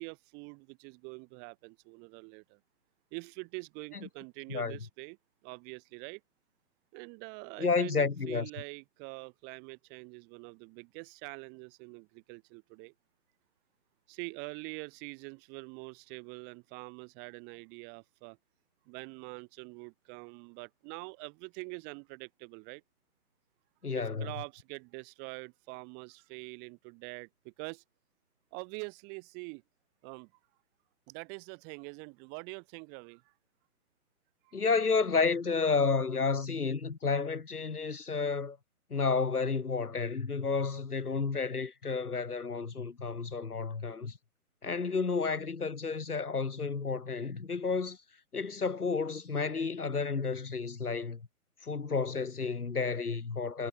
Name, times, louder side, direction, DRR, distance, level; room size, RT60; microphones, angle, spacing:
voice 1, 0.0-2.6 3.1-5.2 5.4-6.2 6.9-12.9 14.1-18.4 18.9-22.8 23.9-27.8 28.5-29.6 30.0-30.3 31.1-33.3 34.4-34.6, right 35 dB, 25° right, 5.5 m, -45 dB
voice 2, 7.6-8.5 23.8-24.3 34.5-38.6 38.9-44.2 44.6-48.0 48.3-51.2 51.6-53.7, left 4 dB, 75° left, 2.1 m, -31 dB
figure-of-eight pair, 135°, 45 cm